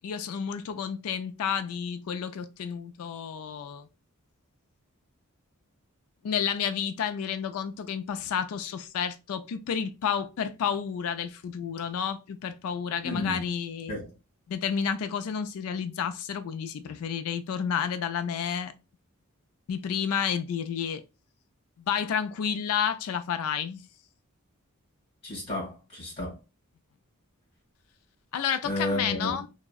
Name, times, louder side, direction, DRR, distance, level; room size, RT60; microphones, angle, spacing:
voice 1, 0.0-3.9 6.2-14.0 14.5-18.7 19.7-21.0 21.9-23.9 28.3-29.5, left 7 dB, 75° left, 0.3 m, -30 dB
voice 2, 13.0-13.4 13.9-14.1 25.2-26.4 28.6-29.4, left 1 dB, 30° left, 1.7 m, -32 dB
3.5 x 2.0 x 2.3 m
head